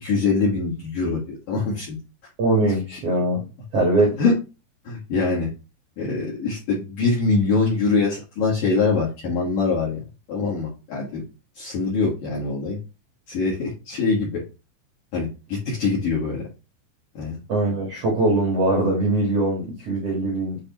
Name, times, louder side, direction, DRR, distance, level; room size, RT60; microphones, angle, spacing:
voice 1, 0.0-2.0 4.2-4.3 4.9-5.5 6.0-10.0 10.3-11.2 11.6-12.8 13.3-14.4 15.1-16.4 17.2-17.4, left 4 dB, 60° left, -5 dB, 2.4 m, -23 dB
voice 2, 2.4-3.4 3.7-4.2 17.5-20.6, right 2 dB, 80° right, -2 dB, 1.4 m, -21 dB
9.2 x 3.4 x 3.0 m, 0.29 s
omnidirectional pair, 5.7 m